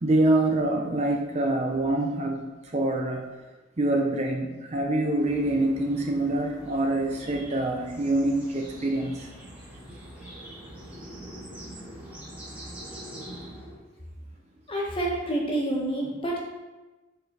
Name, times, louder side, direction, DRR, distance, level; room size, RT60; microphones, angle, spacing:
voice 1, 0.0-3.2 3.8-9.3, right 2 dB, 35° right, 1 dB, 0.6 m, -25 dB
sound 1, 5.2-13.8, right 1 dB, 10° right, 1.8 m, -43 dB
voice 2, 14.7-16.4, right 1 dB, 30° left, -3 dB, 1.4 m, -28 dB
6.7 x 4.0 x 4.1 m, 1.2 s
head